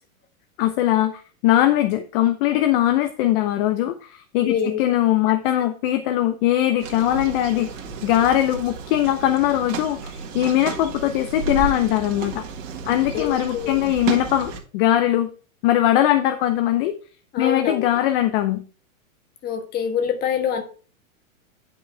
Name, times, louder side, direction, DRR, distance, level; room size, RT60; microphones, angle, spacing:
voice 1, 0.6-7.7 8.0-12.4 12.9-15.3 15.6-16.9 17.4-18.6, left 13 dB, 40° left, 8 dB, 0.8 m, -21 dB
voice 2, 4.4-4.8 12.9-13.9 17.3-17.9 19.4-20.6, left 7 dB, 25° left, 5 dB, 1.4 m, -26 dB
sound 1, 6.8-14.6, right 5 dB, 65° right, 1.9 m, -32 dB
11.0 x 5.4 x 3.4 m, 0.37 s
hypercardioid pair, 140°, 41 cm